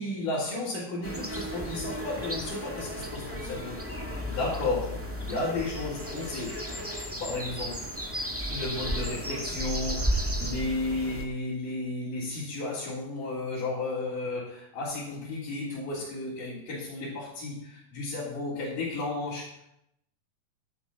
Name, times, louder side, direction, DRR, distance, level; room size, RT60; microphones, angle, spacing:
voice 1, 0.0-4.0 4.4-6.6 7.2-7.8 8.5-19.7, left 2 dB, 65° left, -8 dB, 5.1 m, -33 dB
sound 1, 1.0-11.2, equal, 10° right, 0.9 m, -34 dB
15.5 x 11.5 x 4.3 m, 0.78 s
omnidirectional pair, 3.9 m